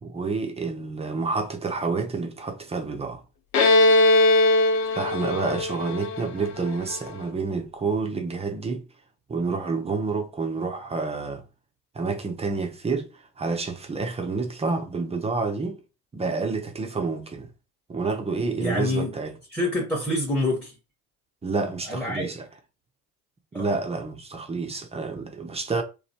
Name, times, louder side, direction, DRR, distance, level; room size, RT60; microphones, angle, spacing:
voice 1, 0.0-3.2 4.9-8.8 9.3-11.4 11.9-13.1 13.4-15.8 16.1-17.5 17.9-19.3 21.4-22.4 23.5-25.8, right 4 dB, 15° right, 0.5 m, -29 dB
Bowed string instrument, 3.5-7.1, left 2 dB, 70° left, 0.8 m, -20 dB
voice 2, 18.6-19.2 19.5-20.8 21.9-22.3 23.5-23.7, left 1 dB, 5° left, 0.9 m, -26 dB
3.0 x 2.3 x 2.7 m
figure-of-eight pair, 65°, 47 cm